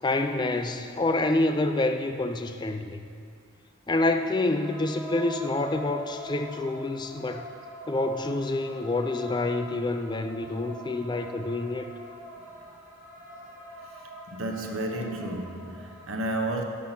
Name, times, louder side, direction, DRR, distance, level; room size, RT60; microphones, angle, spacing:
voice 1, 0.0-3.1 3.9-7.5 7.9-11.9, left 2 dB, 20° left, 7 dB, 0.3 m, -27 dB
sound 1, 4.6-16.1, equal, 5° right, 1.3 m, -43 dB
voice 2, 14.3-16.6, right 1 dB, 80° right, 3 dB, 1.1 m, -32 dB
12.5 x 5.7 x 5.8 m, 2.3 s
head